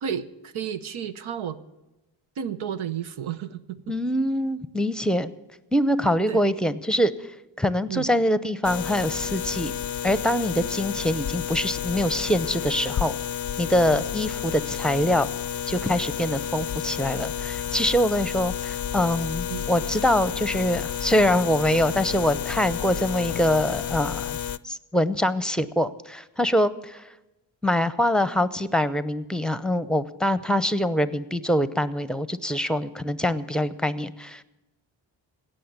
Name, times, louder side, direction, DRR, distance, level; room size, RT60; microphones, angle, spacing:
voice 1, 0.0-1.6 2.4-3.8 6.3-6.4 7.9-8.1 13.9-14.1 19.5-19.7, right 8 dB, 80° right, 10 dB, 0.9 m, -32 dB
voice 2, 3.9-5.3 5.7-7.1 7.6-9.7 10.0-13.2 13.6-15.3 15.7-24.4 24.6-27.0 27.6-34.4, left 1 dB, ahead, 14 dB, 0.7 m, -24 dB
sound 1, 8.6-24.6, left 9 dB, 40° left, 0.5 m, -31 dB
17.0 x 6.6 x 9.5 m, 1.0 s
cardioid pair, 65°, 47 cm